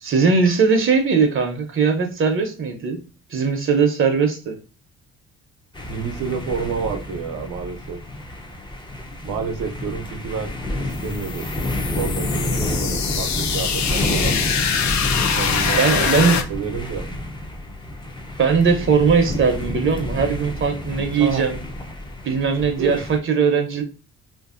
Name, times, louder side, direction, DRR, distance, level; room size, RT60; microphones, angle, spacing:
voice 1, 0.0-3.0 3.3-4.6 15.8-16.4 18.4-21.6 22.2-23.8, right 5 dB, 45° right, 5 dB, 0.6 m, -19 dB
sound 1, 5.7-23.2, left 1 dB, 15° left, 0.5 m, -29 dB
voice 2, 5.9-8.0 9.2-10.5 10.8-11.5 11.9-14.4 15.3-17.1 21.2-21.5 22.6-23.0, right 6 dB, 80° right, 5 dB, 0.7 m, -29 dB
sound 2, 10.9-16.4, left 7 dB, 65° left, 0.5 m, -24 dB
2.6 x 2.6 x 2.4 m, 0.35 s
cardioid pair, 90°, 30 cm